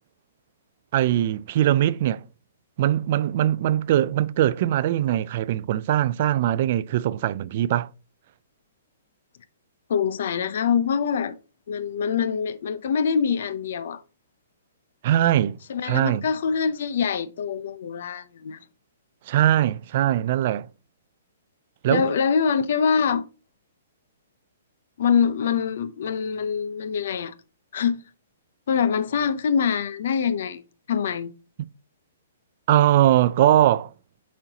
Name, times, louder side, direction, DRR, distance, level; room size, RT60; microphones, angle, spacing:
voice 1, 0.9-2.2 2.8-7.9 15.0-15.6 15.8-16.2 19.3-20.7 21.8-22.1 31.6-31.7 32.7-33.9, right 12 dB, 45° right, 0.3 m, -21 dB
voice 2, 9.9-11.4 11.7-14.0 15.7-18.6 21.9-23.2 25.0-27.3 27.7-28.0 28.7-30.6 30.9-31.3, left 6 dB, 60° left, 0.6 m, -24 dB
8.8 x 4.3 x 2.8 m
hypercardioid pair, 155°, 0 cm